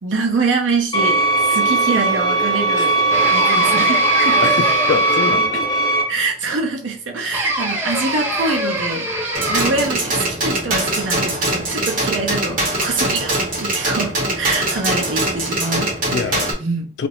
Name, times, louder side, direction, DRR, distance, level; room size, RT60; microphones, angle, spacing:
voice 1, 0.0-3.0 3.3-4.5 5.5-5.6 6.1-9.1 9.5-16.2 16.6-16.9, right 3 dB, 85° right, 0.7 m, -24 dB
sound 1, 0.9-6.0, right 3 dB, 25° left, 0.9 m, -18 dB
sound 2, 3.1-5.7 7.3-10.0, right 1 dB, 10° right, 0.5 m, -24 dB
voice 2, 4.4-5.5 16.1-16.5 17.0-17.1, left 5 dB, 70° left, 0.3 m, -25 dB
sound 3, 9.3-16.5, right 1 dB, 45° right, 0.9 m, -22 dB
2.5 x 2.1 x 2.9 m
head